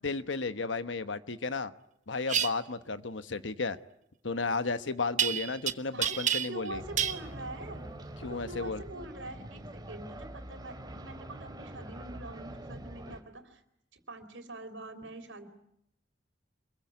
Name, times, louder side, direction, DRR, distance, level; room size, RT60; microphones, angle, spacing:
voice 1, 0.0-1.7 2.1-3.8 4.2-6.8 8.2-8.8, left 3 dB, 75° left, 12 dB, 1.1 m, -33 dB
sound 1, 2.3-2.5 5.2-5.7 6.0-6.7 7.0-7.2, right 9 dB, 40° right, 1.3 m, -28 dB
voice 2, 5.9-6.2 6.5-7.9 8.3-13.6 13.9-15.4, right 2 dB, 85° right, 8 dB, 3.8 m, -44 dB
sound 2, 6.7-13.2, right 1 dB, 20° right, 2.6 m, -44 dB
26.5 x 22.5 x 9.4 m, 0.78 s
head